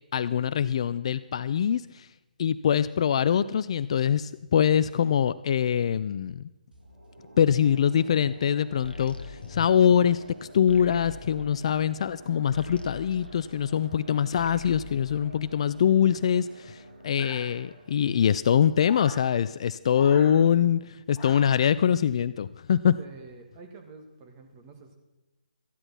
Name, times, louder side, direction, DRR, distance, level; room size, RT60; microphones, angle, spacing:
voice 1, 0.1-2.1 2.4-6.4 7.4-23.0, left 8 dB, 40° left, 15 dB, 0.3 m, -24 dB
sound 1, 6.7-19.8 20.1-20.2, right 2 dB, 75° right, 2.3 m, -50 dB
sound 2, 8.8-14.0 14.3-16.0, left 3 dB, 85° left, 1.0 m, -43 dB
sound 3, 17.2-17.9 18.8-19.3 19.9-20.3 21.1-21.7, left 3 dB, 15° left, 3.1 m, -43 dB
voice 2, 23.0-25.0, right 4 dB, 25° right, 3 dB, 1.7 m, -48 dB
14.0 x 9.8 x 5.9 m, 1.0 s
figure-of-eight pair, 140°, 5 cm